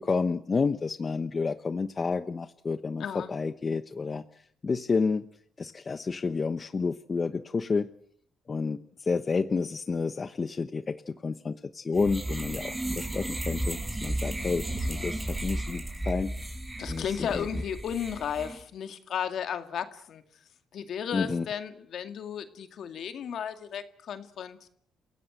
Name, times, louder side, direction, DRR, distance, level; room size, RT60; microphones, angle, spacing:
voice 1, 0.0-5.3 5.6-7.9 8.5-16.3 16.9-17.6 21.1-21.5, left 4 dB, 35° left, 11 dB, 0.9 m, -30 dB
sound 1, 11.9-18.6, right 1 dB, 15° right, 5.4 m, -34 dB
voice 2, 16.8-20.2 20.7-24.7, left 8 dB, 65° left, 9 dB, 2.2 m, -34 dB
28.5 x 16.5 x 7.9 m, 0.64 s
cardioid pair, 90°, 0 cm